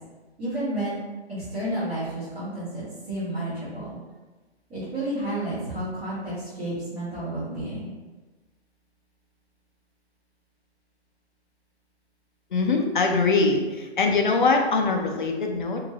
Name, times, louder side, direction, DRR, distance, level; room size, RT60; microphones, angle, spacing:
voice 1, 0.4-1.0 1.3-4.0 4.7-7.9, right 1 dB, 5° right, -20 dB, 0.7 m, -31 dB
voice 2, 12.5-15.8, left 3 dB, 45° left, 3 dB, 0.4 m, -22 dB
2.9 x 2.5 x 2.9 m, 1.2 s
figure-of-eight pair, 155°, 34 cm